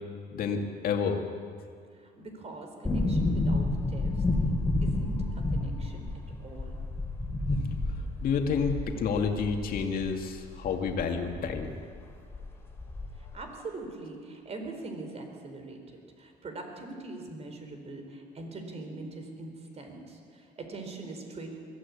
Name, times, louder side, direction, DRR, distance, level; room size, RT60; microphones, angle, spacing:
voice 1, 0.3-1.2 8.2-11.7, left 5 dB, 60° left, 3 dB, 2.4 m, -29 dB
voice 2, 1.9-4.2 4.8-6.0 6.4-6.8 13.3-21.5, right 2 dB, 40° right, 4 dB, 4.3 m, -42 dB
sound 1, 2.8-11.7 11.9-12.0 12.3-13.3 13.6-13.7, left 2 dB, 15° left, 3.6 m, -30 dB
22.0 x 15.0 x 8.6 m, 2.2 s
cardioid pair, 110°, 17 cm